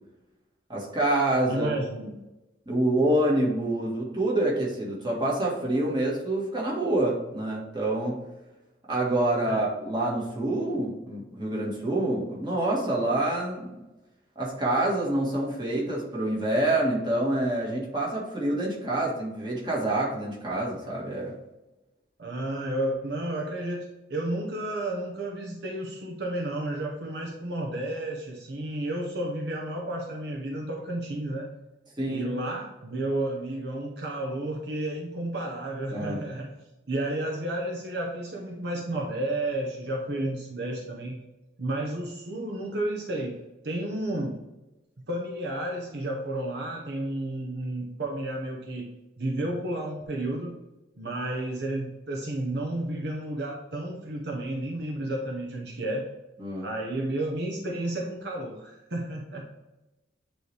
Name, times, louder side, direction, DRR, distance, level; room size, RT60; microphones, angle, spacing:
voice 1, 0.7-1.7 2.6-8.2 8.9-13.7 14.3-21.3 32.0-32.3 35.9-36.2 56.4-56.7, right 1 dB, 25° right, -4 dB, 1.7 m, -27 dB
voice 2, 1.5-2.1 9.5-9.6 22.2-31.5 32.1-36.5 36.9-41.2 41.6-43.4 43.6-44.4 45.1-50.6 51.0-56.0 56.6-59.4, right 1 dB, 60° right, -1 dB, 0.9 m, -32 dB
9.0 x 3.2 x 3.4 m, 1.0 s
head